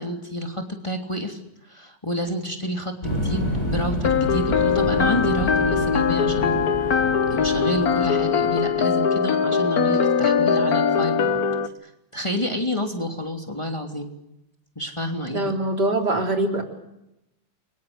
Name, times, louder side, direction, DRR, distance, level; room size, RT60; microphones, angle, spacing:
voice 1, 0.0-1.4 1.7-6.5 7.3-11.4 11.8-14.1 14.8-15.5, left 1 dB, 15° left, 3 dB, 3.0 m, -29 dB
sound 1, 3.0-8.8, equal, 35° left, 7.0 m, -29 dB
sound 2, 4.0-11.7, left 6 dB, 55° left, 1.7 m, -21 dB
voice 2, 15.3-16.6, right 2 dB, 60° right, 3 dB, 4.4 m, -23 dB
29.5 x 24.5 x 8.0 m, 0.87 s
omnidirectional pair, 2.1 m